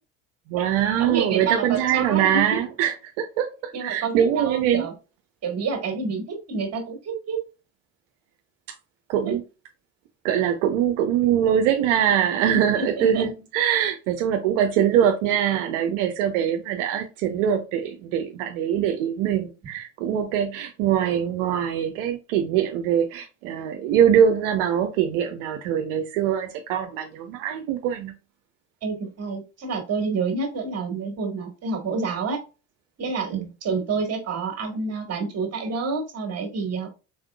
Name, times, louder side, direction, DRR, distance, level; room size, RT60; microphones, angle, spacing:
voice 1, 0.5-4.9 9.1-9.4 10.2-28.1 33.3-33.5, right 9 dB, 80° right, 0.7 m, -23 dB
voice 2, 1.0-2.6 3.7-4.9 5.4-7.4 9.2-9.4 12.7-13.3 20.1-20.2 28.8-32.4 33.0-36.9, right 4 dB, 40° right, 1.5 m, -28 dB
4.0 x 3.6 x 2.2 m
supercardioid pair, 80°, 38 cm